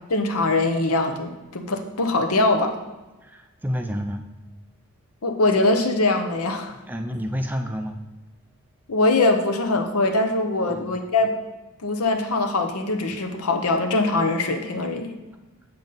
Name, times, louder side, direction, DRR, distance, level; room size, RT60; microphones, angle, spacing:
voice 1, 0.1-2.7 5.2-6.7 8.9-11.4 11.8-15.1, left 2 dB, 75° left, 5 dB, 0.9 m, -22 dB
voice 2, 3.2-4.3 6.9-8.0 10.6-11.0, equal, 10° right, 5 dB, 0.4 m, -29 dB
7.0 x 6.8 x 3.9 m, 1.1 s
head